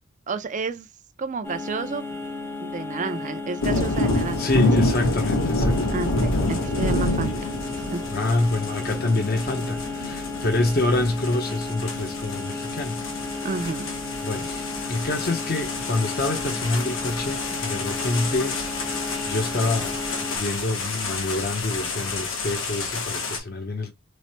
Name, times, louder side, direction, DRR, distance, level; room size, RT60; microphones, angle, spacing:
voice 1, 0.3-0.9 1.2-2.1 2.6-4.9 5.9-7.5 7.8-8.0 13.4-13.9, right 4 dB, 35° right, 0.4 m, -31 dB
sound 1, 1.4-20.4, left 3 dB, 10° left, 0.6 m, -34 dB
sound 2, 3.6-23.4, left 2 dB, 70° left, 1.0 m, -28 dB
voice 2, 4.4-6.0 8.1-13.0 14.2-18.6 18.8-23.9, left 2 dB, 50° left, 0.7 m, -26 dB
3.2 x 2.0 x 4.2 m
head